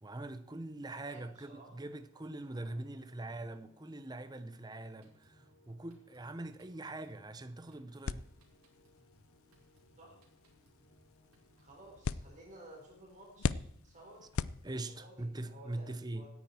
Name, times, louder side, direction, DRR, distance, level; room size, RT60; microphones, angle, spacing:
voice 1, 0.0-8.3 14.6-16.3, right 2 dB, 20° right, 0.7 m, -43 dB
voice 2, 1.0-1.7 2.4-3.1 10.0-10.2 11.6-14.3 14.6-16.3, right 1 dB, 35° right, 3.9 m, -55 dB
sound 1, 1.2-13.1, left 1 dB, 45° left, 4.8 m, -68 dB
Drum kit, 4.8-12.0, right 1 dB, 85° right, 3.6 m, -70 dB
sound 2, 8.0-15.2, left 5 dB, 70° left, 0.4 m, -42 dB
16.5 x 10.0 x 4.4 m
head